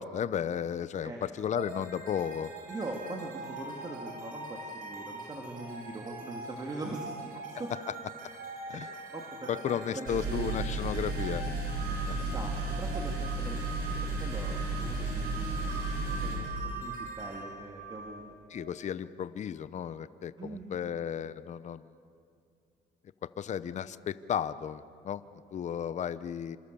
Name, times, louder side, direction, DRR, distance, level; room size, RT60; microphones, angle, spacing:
voice 1, 0.0-2.5 8.7-8.9 9.5-11.4 12.1-12.2 18.5-21.9 23.4-25.2 25.5-26.6, left 8 dB, 45° left, 14 dB, 0.8 m, -34 dB
sound 1, 1.6-18.7, right 3 dB, 55° right, 6.0 m, -43 dB
voice 2, 2.7-7.9 8.7-8.8 9.1-10.4 12.2-15.6 16.1-18.2 20.4-20.7, right 2 dB, 25° right, 0 dB, 2.8 m, -42 dB
sound 2, 10.1-16.4, right 3 dB, 80° right, 6.5 m, -33 dB
27.5 x 26.5 x 7.0 m, 2.4 s
cardioid pair, 110°, 17 cm